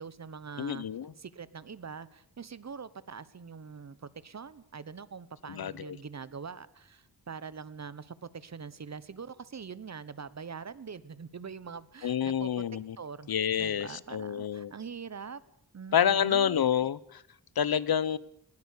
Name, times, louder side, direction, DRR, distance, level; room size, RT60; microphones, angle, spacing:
voice 1, 0.0-0.8 1.2-12.5 13.0-13.3 13.6-15.4 15.7-16.9, right 6 dB, 45° right, 17 dB, 1.2 m, -43 dB
voice 2, 0.6-1.1 5.5-5.9 12.0-13.0 13.3-14.7 15.9-17.2 17.6-18.2, left 8 dB, 70° left, 20 dB, 1.0 m, -28 dB
19.5 x 19.0 x 8.5 m, 0.68 s
wide cardioid pair, 125°, 38 cm